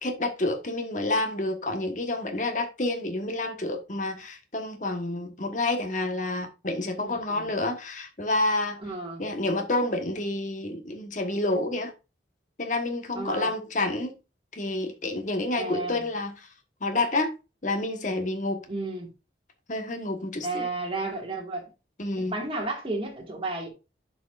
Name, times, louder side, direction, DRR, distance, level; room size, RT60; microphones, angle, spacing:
voice 1, 0.0-8.8 9.2-11.9 12.6-14.2 14.5-16.5 16.8-17.3 17.6-18.6 19.7-20.7 22.0-22.3, left 2 dB, 45° left, 1.3 m, -29 dB
voice 2, 7.0-7.5 8.8-9.2 13.2-13.5 15.6-16.1 18.7-19.1 20.4-21.7 22.2-23.7, right 2 dB, 30° right, 1.9 m, -33 dB
12.0 x 4.7 x 2.5 m
head